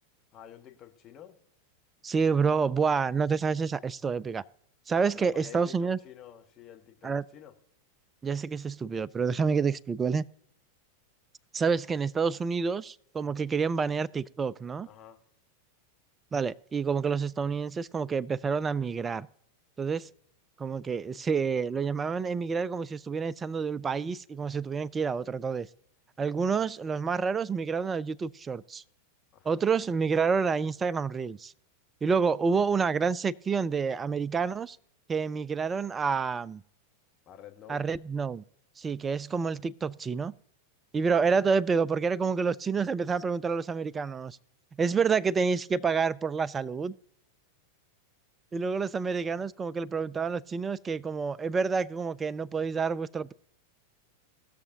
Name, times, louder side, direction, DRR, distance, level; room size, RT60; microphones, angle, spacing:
voice 1, 0.3-1.4 5.1-7.5 14.8-15.2 29.3-29.5 37.3-37.8, left 10 dB, 30° left, 1.2 m, -49 dB
voice 2, 2.0-4.4 4.9-6.0 7.0-7.2 8.2-10.3 11.5-14.9 16.3-19.3 19.8-20.1 20.6-25.7 26.2-28.8 29.5-31.5 32.0-34.8 35.1-36.6 37.7-38.4 38.8-40.3 40.9-44.4 44.8-46.9 48.5-53.3, right 5 dB, 20° right, 0.3 m, -28 dB
19.5 x 6.6 x 2.8 m
figure-of-eight pair, 90°, 0 cm